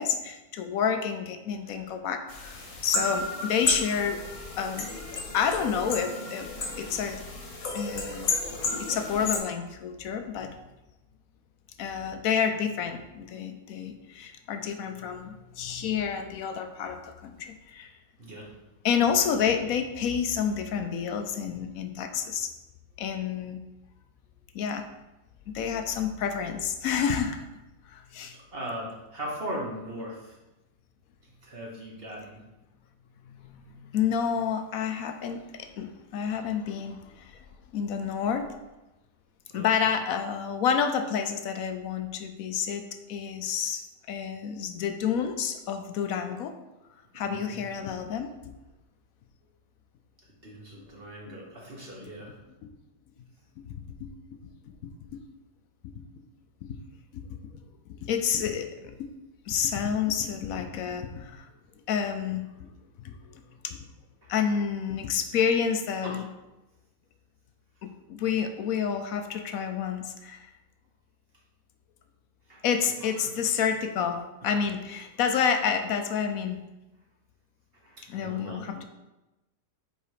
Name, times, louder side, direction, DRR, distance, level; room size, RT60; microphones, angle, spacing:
voice 1, 0.0-4.2 4.6-4.9 5.3-6.5 6.8-7.2 7.7-8.3 8.8-10.6 11.8-17.9 18.8-22.5 23.0-23.6 24.5-24.8 25.5-27.5 27.9-28.3 33.3-37.4 37.7-38.5 39.5-42.8 43.1-46.5 47.1-48.5 50.8-50.9 51.3-51.4 52.6-52.7 53.6-53.7 54.0-54.1 54.7-55.2 55.8-56.2 56.6-56.8 57.1-57.2 58.0-59.1 59.5-61.5 61.9-62.7 63.0-63.1 63.6-63.8 64.3-66.3 67.8-70.4 72.6-76.6 78.1-78.8, left 7 dB, 70° left, 7 dB, 0.9 m, -29 dB
sound 1, 2.3-9.4, left 3 dB, 50° left, 1.4 m, -32 dB
voice 2, 28.5-30.3 31.4-32.4 39.5-39.7 47.3-47.6 50.4-52.3 66.0-66.2 72.5-72.6 73.2-73.3 77.8-78.6, equal, 35° right, -3 dB, 1.4 m, -38 dB
5.2 x 4.9 x 4.9 m, 1.0 s
omnidirectional pair, 1.9 m